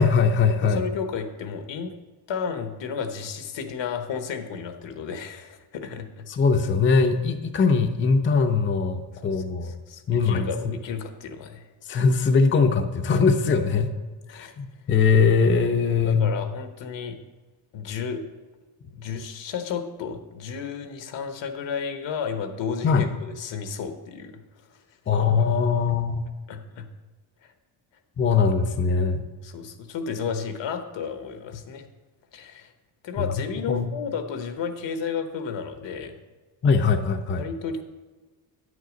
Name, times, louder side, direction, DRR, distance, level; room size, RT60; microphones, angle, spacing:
voice 1, 0.0-0.8 6.3-9.7 10.1-10.8 11.9-13.9 14.3-16.3 22.8-23.1 25.1-26.2 28.2-29.2 33.7-33.9 36.6-37.4, left 5 dB, 30° left, 6 dB, 0.5 m, -21 dB
voice 2, 0.6-1.9 2.3-6.3 9.2-11.7 14.3-14.5 16.0-17.2 17.7-18.2 18.9-24.4 26.5-26.9 29.4-31.9 32.3-32.7 33.0-36.1 37.4-37.8, left 6 dB, 80° left, 7 dB, 1.1 m, -32 dB
9.4 x 6.6 x 5.1 m, 1.3 s
wide cardioid pair, 170°, 44 cm